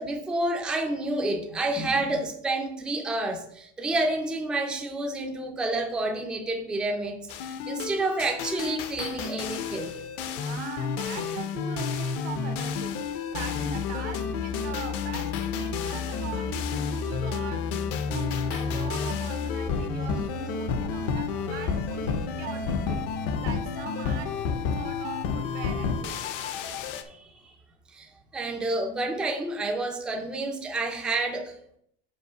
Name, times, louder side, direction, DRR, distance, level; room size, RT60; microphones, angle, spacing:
voice 1, 0.0-7.2 7.5-9.9 19.9-20.1 21.4-21.5 27.1-27.5 27.9-31.5, right 2 dB, ahead, 0.4 m, -29 dB
sound 1, 7.3-27.0, left 5 dB, 40° left, 0.6 m, -30 dB
voice 2, 10.3-13.0 13.3-17.8 18.1-23.1 23.4-24.4 24.7-26.2, right 7 dB, 90° right, 1.4 m, -40 dB
5.5 x 4.9 x 6.5 m
cardioid pair, 175°, 35 cm